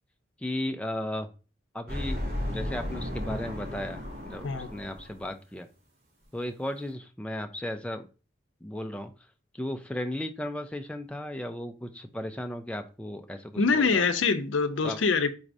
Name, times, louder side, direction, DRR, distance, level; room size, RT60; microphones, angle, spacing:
voice 1, 0.4-1.3 1.7-2.2 2.5-5.7 6.3-8.1 8.6-9.1 9.5-14.1 14.8-15.0, left 1 dB, 5° left, 0.3 m, -35 dB
sound 1, 1.9-5.3, left 1 dB, 50° right, 2.5 m, -34 dB
voice 2, 13.6-15.3, left 4 dB, 80° left, 0.6 m, -24 dB
4.6 x 4.0 x 2.6 m
head